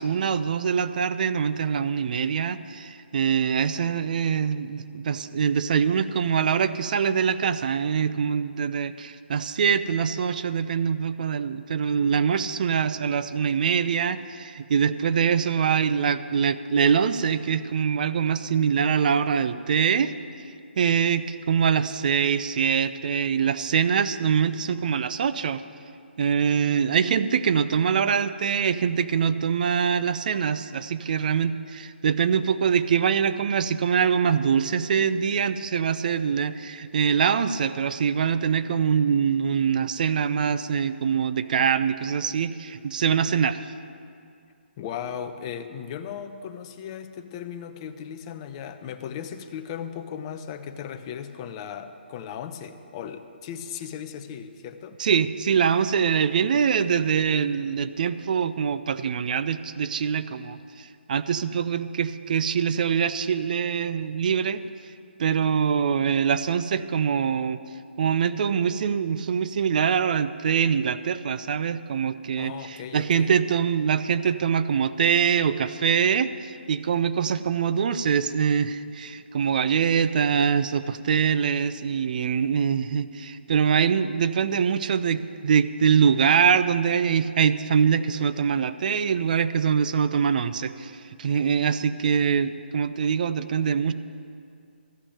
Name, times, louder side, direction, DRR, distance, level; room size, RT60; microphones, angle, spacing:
voice 1, 0.0-20.1 20.8-25.6 26.2-43.7 55.0-64.6 65.2-67.6 68.0-90.9 91.2-93.9, right 7 dB, 45° right, 13 dB, 0.5 m, -24 dB
voice 2, 44.8-55.0 72.4-73.3, left 8 dB, 30° left, 8 dB, 0.7 m, -37 dB
13.0 x 6.1 x 9.6 m, 2.4 s
figure-of-eight pair, 145°, 6 cm